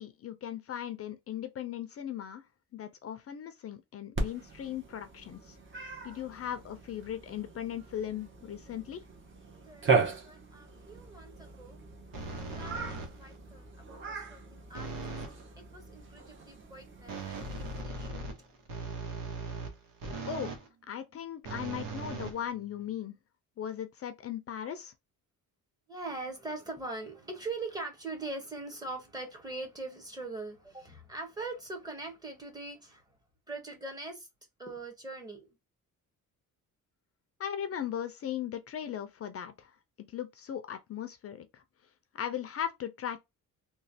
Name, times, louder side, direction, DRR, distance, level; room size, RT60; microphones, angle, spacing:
voice 1, 0.0-2.4 2.7-5.6 6.0-9.0 20.3-20.5 20.9-23.2 23.6-24.9 37.4-39.7 40.1-41.6 42.1-43.2, left 10 dB, 45° left, 0.5 m, -38 dB
Cat, 4.2-17.8, right 4 dB, 35° right, 0.9 m, -37 dB
voice 2, 9.7-11.8 12.3-15.2 15.6-18.4 25.9-33.1 33.5-34.3 34.6-35.5, right 3 dB, 10° right, 1.0 m, -42 dB
sound 1, 12.1-13.4 14.7-15.4 17.1-20.7 21.4-22.9, right 3 dB, 85° right, 1.0 m, -39 dB
3.1 x 2.3 x 2.7 m
cardioid pair, 125°, 33 cm